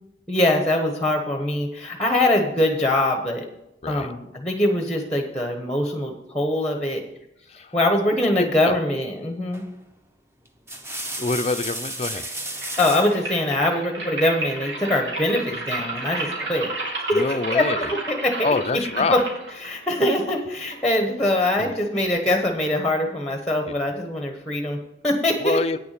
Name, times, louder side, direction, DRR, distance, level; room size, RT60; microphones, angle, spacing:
voice 1, 0.3-3.4 3.9-7.0 7.7-9.6 12.8-16.7 17.1-17.2 17.5-18.5 19.1-19.2 19.6-25.6, left 1 dB, 5° left, 4 dB, 1.1 m, -23 dB
voice 2, 8.4-8.8 11.2-12.2 16.5-16.6 17.1-17.9 18.4-19.2 21.6-21.7 23.7-23.8 25.4-25.8, left 3 dB, 35° left, 10 dB, 0.5 m, -26 dB
sound 1, 9.5-9.8 10.4-13.2 14.6-15.3, right 1 dB, 15° right, 0.9 m, -33 dB
sound 2, 12.0-21.0, right 2 dB, 80° right, 3.1 m, -32 dB
9.3 x 7.1 x 6.6 m, 0.86 s
head